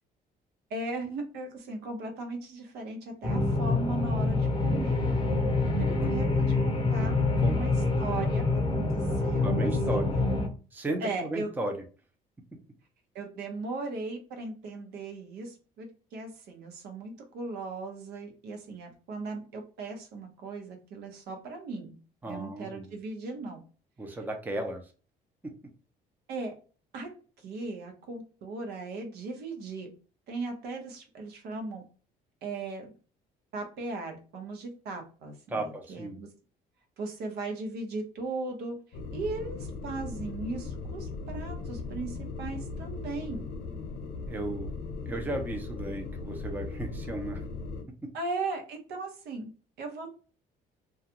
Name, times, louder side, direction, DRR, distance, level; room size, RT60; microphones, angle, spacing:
voice 1, 0.7-5.0 5.8-7.2 7.4-7.7 8.0-10.2 11.0-11.5 13.1-22.0 22.3-23.6 26.3-26.5 26.9-27.1 27.4-29.9 30.3-31.8 32.4-32.9 33.5-36.3 37.0-38.8 39.1-43.5 48.1-49.5 49.8-50.1, right 3 dB, 75° right, 4 dB, 0.9 m, -37 dB
sound 1, 3.2-10.5, left 2 dB, 30° left, 0.6 m, -26 dB
voice 2, 9.4-10.1 10.7-11.7 22.2-22.9 24.0-24.8 35.5-36.2 44.3-44.7 45.1-47.4, right 1 dB, 10° right, 3 dB, 0.5 m, -34 dB
sound 2, 38.9-47.8, left 3 dB, 75° left, 0.7 m, -38 dB
2.3 x 2.3 x 2.8 m, 0.37 s
cardioid pair, 110°, 17 cm